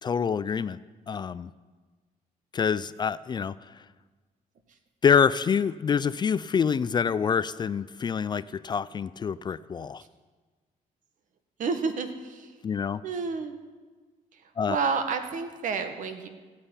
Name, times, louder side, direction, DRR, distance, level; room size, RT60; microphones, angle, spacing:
voice 1, 0.0-0.8 1.1-1.5 2.5-3.8 5.0-10.0 12.6-13.0 14.6-14.8, left 6 dB, 30° left, 17 dB, 0.4 m, -26 dB
voice 2, 11.6-12.5 13.0-13.6 14.3-14.4 14.7-16.3, right 5 dB, 65° right, 7 dB, 1.6 m, -30 dB
14.5 x 8.8 x 9.8 m, 1.4 s
cardioid pair, 145°, 15 cm